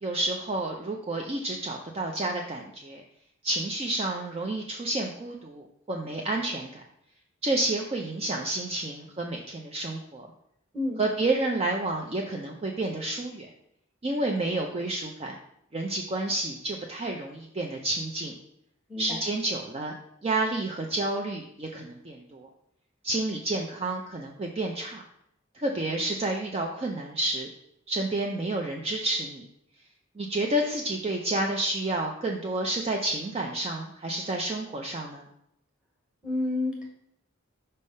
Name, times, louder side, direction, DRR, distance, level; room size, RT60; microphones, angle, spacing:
voice 1, 0.0-3.0 3.4-6.8 7.4-10.3 11.0-13.5 14.0-15.3 15.7-18.3 19.0-19.9 20.2-22.5 23.0-25.0 25.5-27.5 27.9-29.5 30.2-35.3, right 2 dB, 30° right, 1 dB, 0.5 m, -30 dB
voice 2, 36.2-36.9, left 2 dB, 5° right, -2 dB, 1.4 m, -29 dB
5.4 x 3.4 x 5.3 m, 0.76 s
head